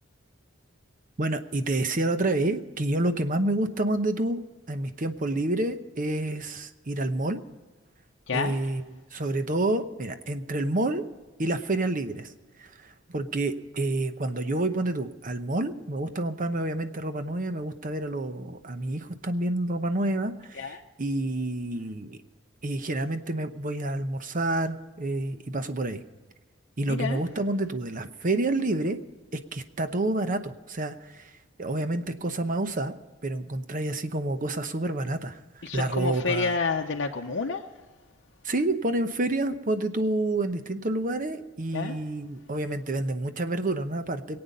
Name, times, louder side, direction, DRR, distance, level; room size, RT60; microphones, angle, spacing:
voice 1, 1.2-7.4 8.3-8.8 9.1-11.0 11.4-12.3 12.6-22.2 22.6-26.0 26.8-29.0 29.5-31.3 31.6-32.9 33.2-35.4 35.7-36.6 38.4-44.4, right 2 dB, 45° right, 9 dB, 0.9 m, -28 dB
voice 2, 8.3-8.6 20.5-20.8 26.9-27.2 35.6-37.6 41.7-41.9, left 4 dB, 65° left, 2 dB, 0.7 m, -29 dB
22.5 x 8.8 x 5.4 m, 1.4 s
head